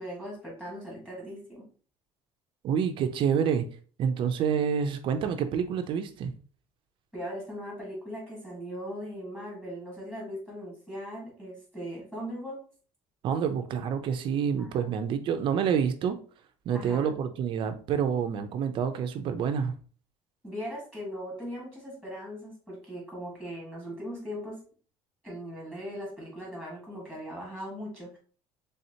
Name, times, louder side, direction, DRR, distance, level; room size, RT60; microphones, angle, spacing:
voice 1, 0.0-1.6 7.1-12.6 14.6-14.8 16.7-17.1 20.4-24.6 25.2-28.2, equal, 5° left, 1.5 m, -39 dB
voice 2, 2.6-3.7 4.0-6.3 13.2-16.2 16.7-19.7, right 7 dB, 45° right, 0.4 m, -28 dB
4.3 x 3.5 x 2.7 m
cardioid pair, 160°, 12 cm